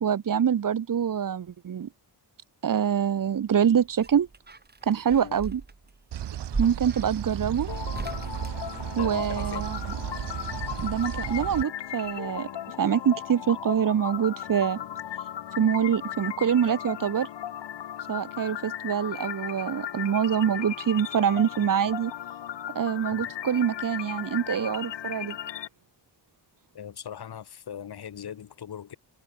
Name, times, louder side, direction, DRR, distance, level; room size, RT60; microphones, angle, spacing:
voice 1, 0.0-1.9 2.6-4.3 4.8-5.6 6.6-7.7 8.9-10.0 10.8-12.5 12.8-14.8 15.6-17.3 18.1-22.1 22.7-25.4, right 8 dB, 50° right, 1.6 m, -25 dB
sound 1, 3.5-9.5 10.9-11.8 12.0-12.1, right 3 dB, 25° right, 3.7 m, -39 dB
sound 2, 6.1-11.6, right 10 dB, 75° right, 2.7 m, -34 dB
sound 3, 7.7-25.7, left 11 dB, 85° left, 4.9 m, -37 dB
voice 2, 9.0-9.7 14.8-14.9 23.1-23.3 26.7-29.0, left 9 dB, 65° left, 4.0 m, -40 dB
cardioid pair, 120°, 42 cm